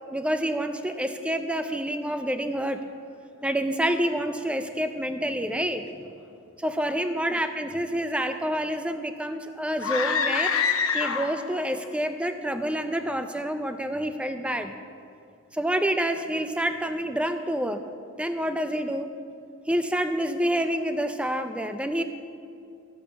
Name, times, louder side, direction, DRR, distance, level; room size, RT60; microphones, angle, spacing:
voice 1, 0.1-2.8 3.4-5.9 6.6-10.5 10.9-14.7 15.5-17.8 18.2-19.1 19.7-22.0, equal, 5° right, 8 dB, 0.5 m, -28 dB
sound 1, 9.8-11.6, left 6 dB, 70° left, 0.9 m, -25 dB
13.0 x 8.5 x 6.0 m, 2.5 s
head